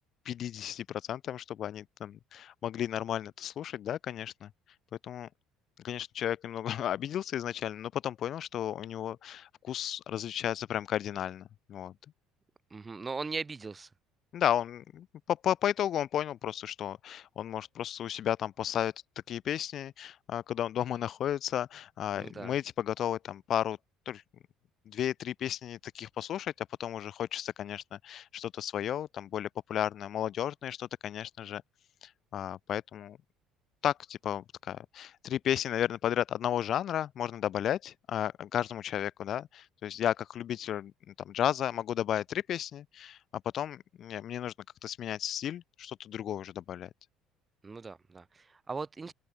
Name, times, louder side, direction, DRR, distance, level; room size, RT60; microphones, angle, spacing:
voice 1, 0.3-4.5 5.0-5.3 5.8-11.9 14.3-18.9 19.3-23.8 24.1-24.2 24.9-31.6 32.0-33.2 33.8-44.5 44.8-46.9, left 10 dB, 55° left, 0.7 m, -33 dB
voice 2, 12.7-13.9 22.2-22.5 47.6-49.1, right 4 dB, 25° right, 0.6 m, -39 dB
hypercardioid pair, 60°, 0 cm